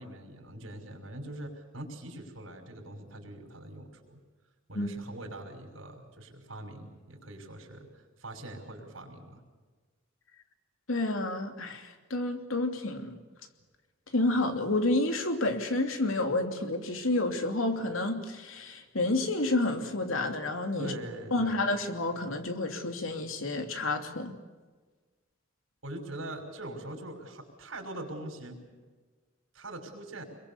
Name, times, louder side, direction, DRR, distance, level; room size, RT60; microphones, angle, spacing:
voice 1, 0.0-4.2 4.7-9.4 20.8-21.7 25.8-28.6 29.5-30.2, right 1 dB, 90° right, 4 dB, 5.8 m, -42 dB
voice 2, 10.9-13.2 14.1-20.9 21.3-24.4, left 2 dB, 90° left, 6 dB, 2.9 m, -30 dB
26.5 x 23.0 x 7.1 m, 1.4 s
head